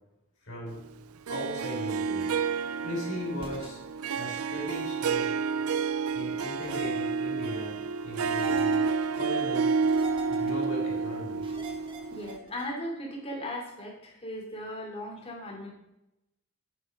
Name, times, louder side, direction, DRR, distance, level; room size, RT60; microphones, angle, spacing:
voice 1, 0.4-0.8 1.3-2.3 2.8-3.8 4.1-5.4 6.1-9.7 10.3-11.4, left 1 dB, 65° left, -3 dB, 5.4 m, -38 dB
Harp, 1.3-12.4, right 5 dB, 85° right, 0.5 m, -29 dB
sound 1, 3.4-3.7 5.0-5.3 6.6-6.9 8.2-9.1 9.8-10.7 11.4-12.7, right 3 dB, 25° right, 1.8 m, -44 dB
voice 2, 12.1-15.7, left 1 dB, 30° left, 0 dB, 3.0 m, -37 dB
10.0 x 9.6 x 5.2 m, 0.87 s
head